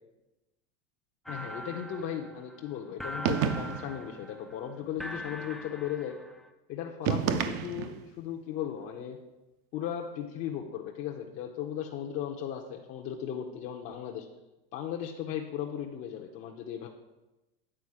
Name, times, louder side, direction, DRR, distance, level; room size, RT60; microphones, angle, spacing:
voice 1, 1.3-6.2 6.7-9.2 9.7-14.3 14.7-16.9, left 9 dB, 45° left, 1 dB, 0.7 m, -36 dB
sound 1, 1.3-6.5, equal, ahead, 0.3 m, -42 dB
sound 2, 3.2-4.0 7.0-8.1, right 8 dB, 50° right, 0.6 m, -29 dB
8.9 x 3.8 x 4.8 m, 1.0 s
supercardioid pair, 115°, 30 cm